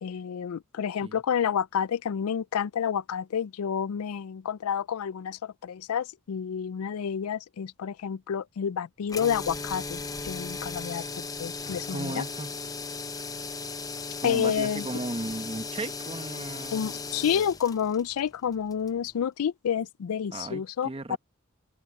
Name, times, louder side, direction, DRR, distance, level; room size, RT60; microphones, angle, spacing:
voice 1, 0.0-12.2 14.2-14.9 16.7-21.2, left 8 dB, 90° left, 0.4 m, -29 dB
sound 1, 9.1-19.2, left 4 dB, 15° left, 0.7 m, -37 dB
voice 2, 11.9-12.6 14.2-16.9 20.3-21.2, right 2 dB, 25° right, 1.0 m, -36 dB
head